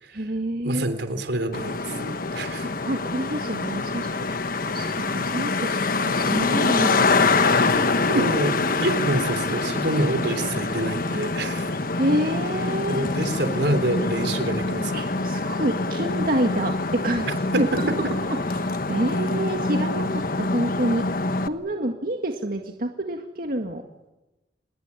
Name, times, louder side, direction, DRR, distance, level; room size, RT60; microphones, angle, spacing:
voice 1, 0.1-0.9 1.9-2.2 2.6-4.4 4.7-8.3 12.0-13.1 14.9-17.9 18.2-21.1 21.5-23.8, right 1 dB, 55° right, 3 dB, 2.0 m, -28 dB
voice 2, 0.6-2.0 2.3-2.7 8.1-8.5 8.8-11.7 12.9-14.9 17.5-17.8, right 1 dB, 75° right, 9 dB, 3.4 m, -26 dB
Traffic noise roadway noise, 1.5-21.5, left 3 dB, 55° left, 1.2 m, -25 dB
26.5 x 20.5 x 9.9 m, 1.0 s
head